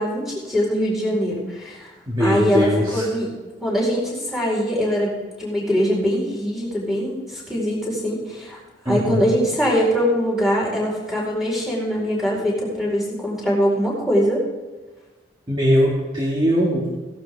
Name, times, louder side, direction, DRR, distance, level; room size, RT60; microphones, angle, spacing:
voice 1, 0.0-1.9 2.2-3.3 3.6-8.6 8.9-14.4, equal, ahead, -5 dB, 4.6 m, -22 dB
voice 2, 2.1-3.1 8.9-9.3 15.5-16.9, equal, 25° right, -4 dB, 2.2 m, -20 dB
16.5 x 11.5 x 3.7 m, 1.3 s
head